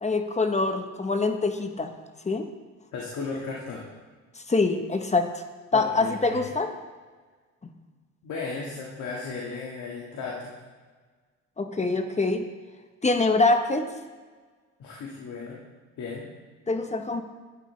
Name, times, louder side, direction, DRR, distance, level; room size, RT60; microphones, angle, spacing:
voice 1, 0.0-1.9 2.2-2.5 4.5-5.3 5.7-6.7 11.6-12.5 13.0-13.9 16.7-17.2, left 3 dB, 25° left, 7 dB, 0.9 m, -24 dB
voice 2, 2.9-3.9 5.7-6.4 8.2-10.5 14.8-15.6 16.0-16.3, left 4 dB, 70° left, -3 dB, 1.7 m, -35 dB
12.0 x 8.9 x 3.2 m, 1.4 s
cardioid pair, 90°, 30 cm